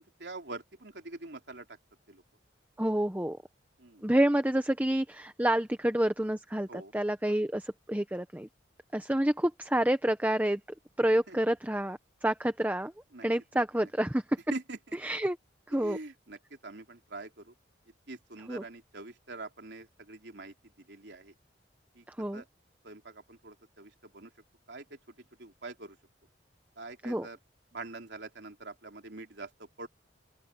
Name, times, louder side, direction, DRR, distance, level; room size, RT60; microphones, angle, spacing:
voice 1, 0.0-1.8 2.1-2.2 3.8-4.1 6.7-6.9 7.3-7.4 11.3-11.4 13.1-13.3 13.5-13.9 14.5-15.0 15.7-17.5 18.1-21.3 22.0-22.1 22.3-22.5 22.8-24.3 24.7-24.9 25.4-26.0 26.8-27.4 27.7-29.9, right 2 dB, 70° right, 3.4 m, -44 dB
voice 2, 2.8-3.4 4.0-8.5 8.9-10.6 11.0-12.9 13.2-14.2 15.0-15.4 15.7-16.0 18.5-18.6 22.2-22.4 27.0-27.3, right 1 dB, 10° right, 0.8 m, -28 dB
open air
head